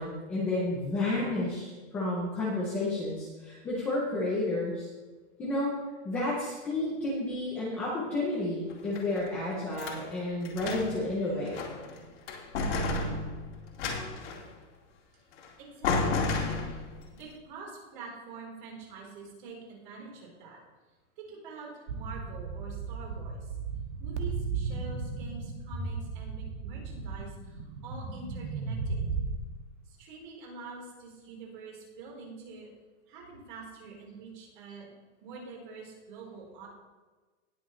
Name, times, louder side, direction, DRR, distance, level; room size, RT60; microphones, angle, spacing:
voice 1, 0.0-4.9 5.4-5.7 6.0-11.6, left 2 dB, 5° left, -7 dB, 0.4 m, -31 dB
sound 1, 8.7-10.0 10.4-11.1 11.5-12.0 12.3-14.5 15.4-15.5 15.8-17.0, left 3 dB, 65° left, 2.4 m, -32 dB
voice 2, 15.6-16.9 17.1-20.6 21.2-23.6 24.0-29.1 29.8-32.7 33.1-34.9 35.2-36.7, right 4 dB, 40° right, -2 dB, 3.8 m, -46 dB
sound 2, 21.9-29.3, right 5 dB, 65° right, 1.6 m, -35 dB
19.0 x 6.4 x 3.1 m, 1.3 s
supercardioid pair, 180°, 37 cm